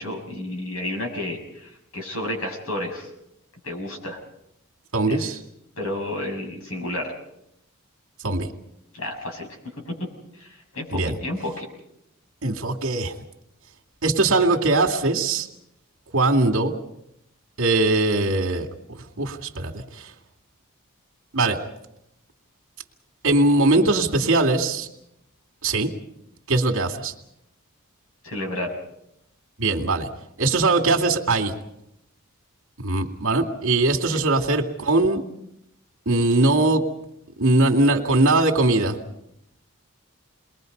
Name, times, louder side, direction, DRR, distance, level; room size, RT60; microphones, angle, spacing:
voice 1, 0.0-3.1 3.6-4.2 5.1-5.3 5.8-7.1 8.9-9.5 9.9-10.0 10.3-11.7 28.2-28.7 34.1-34.2, left 1 dB, 80° left, 2 dB, 6.5 m, -31 dB
voice 2, 4.9-5.4 8.2-8.5 10.9-11.2 12.4-13.1 14.0-15.5 16.1-16.7 17.6-18.7 19.2-20.1 21.3-21.6 23.2-24.9 25.6-25.9 26.5-27.1 29.6-30.1 30.4-31.5 32.8-35.2 36.1-36.8 37.4-39.0, right 2 dB, 65° right, 2 dB, 2.4 m, -20 dB
29.0 x 21.5 x 5.4 m, 0.81 s
head